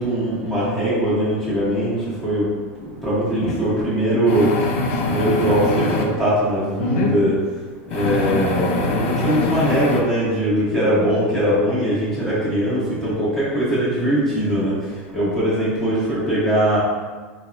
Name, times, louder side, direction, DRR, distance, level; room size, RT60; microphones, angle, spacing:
voice 1, 0.0-2.5 3.0-4.5 5.0-7.4 7.9-14.7 15.1-16.8, right 1 dB, 5° left, -10 dB, 1.1 m, -21 dB
sound 1, 3.4-3.6 4.3-6.1 6.8-7.2 7.9-10.0, left 2 dB, 75° left, 0.4 m, -23 dB
3.3 x 2.3 x 2.6 m, 1.4 s
supercardioid pair, 145°, 7 cm